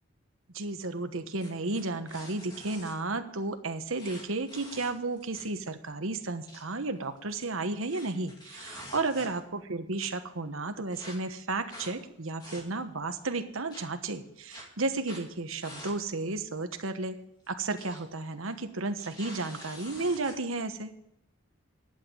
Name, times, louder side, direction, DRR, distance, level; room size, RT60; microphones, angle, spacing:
voice 1, 0.5-17.2 17.5-20.9, right 3 dB, 80° right, 8 dB, 1.2 m, -33 dB
sound 1, 1.4-2.9 4.0-5.6 5.9-6.0 6.3-6.6 7.2-9.5 10.0-10.1 10.9-11.2 11.7-11.9 12.3-12.9 13.7-13.8 14.5-14.6 15.0-15.3 15.6-16.0 16.3-16.4 17.5-18.0 18.3-18.5 18.9-20.4, left 1 dB, 20° left, 2.4 m, -47 dB
11.5 x 8.2 x 7.4 m, 0.79 s
head